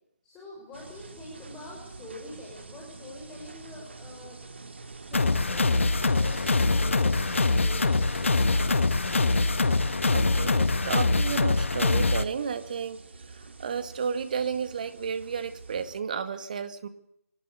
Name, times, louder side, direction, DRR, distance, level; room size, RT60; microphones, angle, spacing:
voice 1, 0.2-4.4 5.0-5.9 6.1-9.4, left 1 dB, 10° left, -2 dB, 6.1 m, -45 dB
sound 1, 0.7-16.0, right 3 dB, 50° right, 2.3 m, -46 dB
sound 2, 5.1-12.2, left 3 dB, 55° left, 1.3 m, -24 dB
voice 2, 10.1-13.0 13.3-16.9, right 6 dB, 35° right, 11 dB, 2.1 m, -32 dB
23.5 x 19.0 x 8.3 m, 0.75 s
figure-of-eight pair, 150°, 8 cm